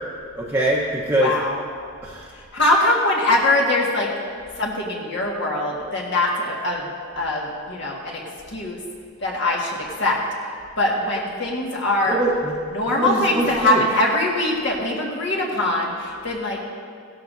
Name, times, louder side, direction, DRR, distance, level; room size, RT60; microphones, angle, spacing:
voice 1, 0.3-1.3 2.0-2.3 12.1-12.6 12.9-13.8, right 1 dB, 10° right, -5 dB, 1.0 m, -23 dB
voice 2, 1.2-1.6 2.5-4.1 4.6-6.9 7.2-8.2 8.5-8.8 9.2-10.2 10.8-12.2 12.7-16.6, left 1 dB, 55° left, -3 dB, 1.8 m, -22 dB
16.5 x 13.0 x 2.7 m, 2.2 s
head